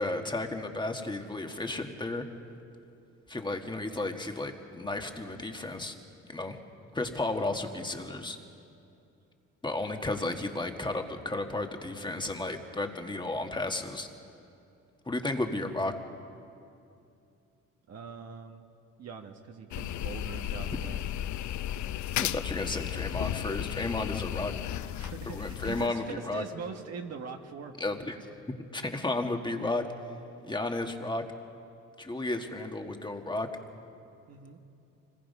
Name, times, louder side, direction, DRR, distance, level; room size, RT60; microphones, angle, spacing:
voice 1, 0.0-2.2 3.3-5.9 6.3-6.6 6.9-8.4 9.6-14.1 15.0-15.9 22.2-24.5 25.3-26.4 27.8-28.2 28.5-29.8 30.4-31.2 32.0-33.5, left 2 dB, 15° left, 4 dB, 1.7 m, -33 dB
voice 2, 17.9-18.6 19.0-21.0 24.8-27.8 34.3-34.6, right 6 dB, 60° right, 4 dB, 1.4 m, -42 dB
sound 1, 19.7-25.9, left 12 dB, 70° left, 0.6 m, -34 dB
25.0 x 19.5 x 5.5 m, 2.6 s
cardioid pair, 90°, 30 cm